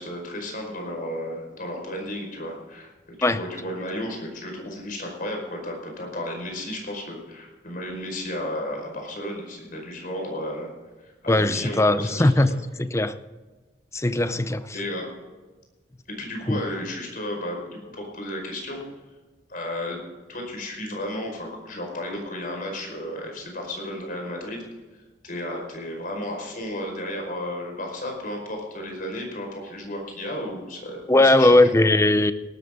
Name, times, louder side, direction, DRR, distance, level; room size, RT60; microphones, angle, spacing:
voice 1, 0.0-2.9 3.2-10.7 11.0-12.5 14.1-14.4 14.7-15.0 16.1-18.8 19.5-20.0 20.3-24.6 25.2-31.6, left 1 dB, 50° left, 1 dB, 5.1 m, -33 dB
voice 2, 11.3-12.5 12.8-13.2 13.9-14.8 16.5-16.6 31.1-32.3, left 1 dB, 15° left, 12 dB, 0.6 m, -19 dB
18.5 x 12.5 x 3.8 m, 1.2 s
head